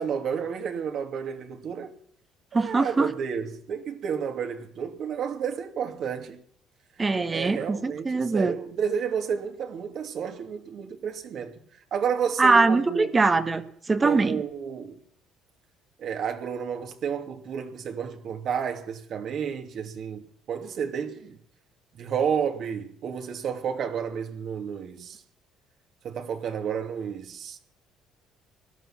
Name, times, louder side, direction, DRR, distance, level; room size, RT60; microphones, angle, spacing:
voice 1, 0.0-1.9 2.5-6.4 7.3-11.5 11.9-13.1 14.0-15.0 16.0-21.4 22.0-25.2 26.0-27.6, right 7 dB, 55° right, 2.7 m, -31 dB
voice 2, 2.5-3.1 7.0-8.5 12.4-14.4, right 3 dB, 20° right, 1.7 m, -22 dB
19.0 x 12.5 x 6.0 m
cardioid pair, 110°, 0 cm